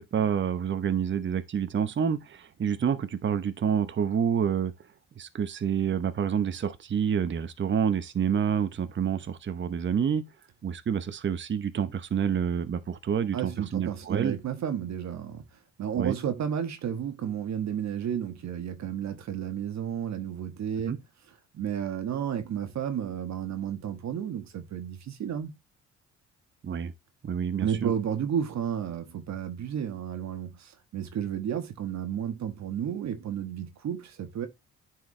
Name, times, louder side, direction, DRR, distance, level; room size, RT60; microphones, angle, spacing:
voice 1, 0.0-4.7 5.2-10.3 10.6-14.4 16.0-16.2 20.9-21.0 26.6-26.9 27.2-27.9, right 7 dB, 40° right, 0.9 m, -28 dB
voice 2, 13.3-15.4 15.8-20.9 21.5-25.6 27.6-34.5, right 9 dB, 65° right, 1.4 m, -32 dB
9.7 x 4.7 x 3.2 m
cardioid pair, 90°, 30 cm